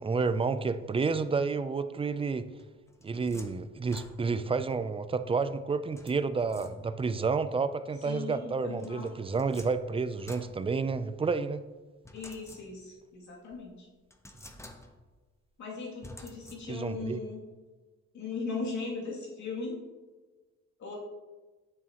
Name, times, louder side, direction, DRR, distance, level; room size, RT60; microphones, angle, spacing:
voice 1, 0.0-2.5 3.0-11.6 16.7-17.2, right 4 dB, 20° right, 12 dB, 0.4 m, -30 dB
sound 1, 2.6-4.6 6.0-7.2 8.8-11.3 12.0-13.0 13.5-13.6 14.1-15.2 16.0-17.0, left 1 dB, 10° left, 0.8 m, -51 dB
voice 2, 8.0-9.1 12.1-13.9 15.6-17.4 18.1-19.8 20.8-21.0, left 4 dB, 70° left, -4 dB, 2.6 m, -38 dB
8.7 x 6.8 x 2.9 m, 1.3 s
cardioid pair, 90°, 30 cm